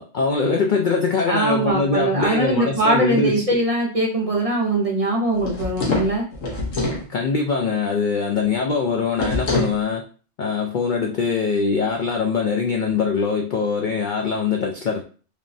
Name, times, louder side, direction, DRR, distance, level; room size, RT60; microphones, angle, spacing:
voice 1, 0.0-3.6 7.1-10.0 10.4-15.0, left 5 dB, 65° left, 1 dB, 0.4 m, -22 dB
voice 2, 1.3-6.3, right 2 dB, 35° right, -2 dB, 0.6 m, -21 dB
sound 1, 5.4-7.1 9.2-9.8, left 2 dB, 80° left, 1.4 m, -24 dB
3.4 x 3.0 x 2.6 m, 0.39 s
omnidirectional pair, 1.3 m